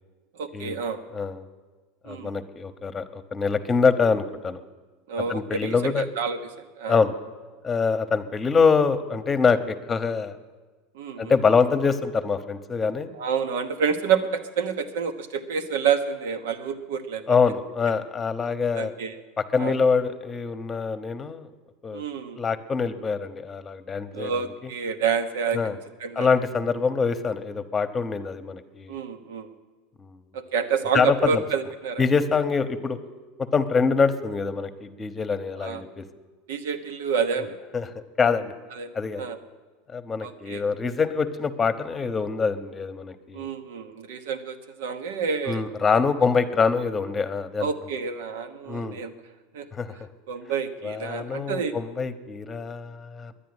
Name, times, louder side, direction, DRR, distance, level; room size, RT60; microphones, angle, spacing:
voice 1, 0.4-1.0 2.0-2.3 5.1-7.0 10.9-11.3 13.1-17.4 18.7-19.1 19.6-19.7 21.9-22.4 24.1-25.6 26.0-26.3 28.9-29.5 30.3-32.0 35.6-35.8 36.5-37.6 38.7-39.4 40.2-40.6 43.3-46.0 47.6-49.1 49.5-49.7 50.3-51.7, right 6 dB, 80° right, 9 dB, 1.1 m, -28 dB
voice 2, 1.1-1.4 2.1-4.6 5.3-6.0 6.9-7.1 7.6-10.3 11.2-13.1 17.3-18.9 19.4-21.5 21.8-22.0 22.4-24.3 24.6-24.7 25.5-25.7 26.2-29.0 30.0-30.2 30.9-31.4 32.0-33.0 33.5-36.0 37.7-37.9 38.2-38.5 38.9-39.2 39.9-43.5 45.5-47.7 48.7-49.0 49.8-49.9 50.8-53.3, left 5 dB, 20° left, 11 dB, 1.0 m, -24 dB
10.5 x 10.0 x 9.7 m, 1.3 s
supercardioid pair, 110°, 0 cm